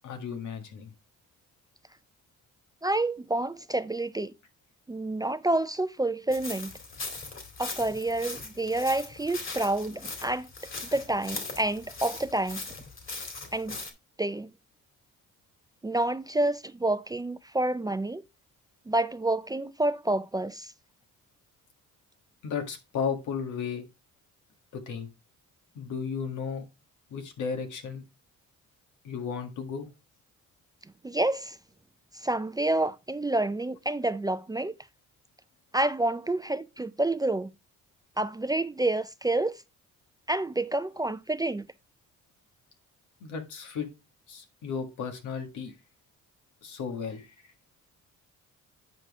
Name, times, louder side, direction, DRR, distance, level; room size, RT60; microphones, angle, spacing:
voice 1, 0.0-0.9 22.4-23.9 24.7-25.1 25.8-26.7 27.1-28.0 29.0-29.9 43.2-43.9 44.3-45.7 46.6-47.3, left 6 dB, 80° left, 1.7 m, -34 dB
voice 2, 2.8-4.3 4.9-6.8 7.6-10.5 10.9-12.6 13.5-13.8 14.2-14.5 15.8-18.2 18.9-20.7 31.0-31.6 32.1-34.8 35.7-37.5 38.2-39.5 40.3-41.7, right 2 dB, 15° right, 0.4 m, -28 dB
sound 1, 6.3-13.9, left 3 dB, 40° left, 2.3 m, -40 dB
8.9 x 5.3 x 3.5 m
cardioid pair, 90°, 30 cm